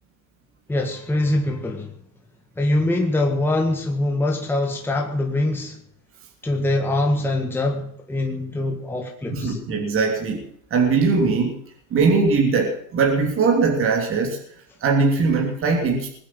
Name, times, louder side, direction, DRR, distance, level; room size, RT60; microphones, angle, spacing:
voice 1, 0.7-1.9 2.6-5.8 6.4-9.6, left 2 dB, 5° left, 1 dB, 1.8 m, -23 dB
voice 2, 9.3-10.4 10.7-11.6 11.9-14.4 14.8-16.1, right 4 dB, 25° right, 1 dB, 3.2 m, -20 dB
20.5 x 8.9 x 7.8 m, 0.68 s
supercardioid pair, 130°, 48 cm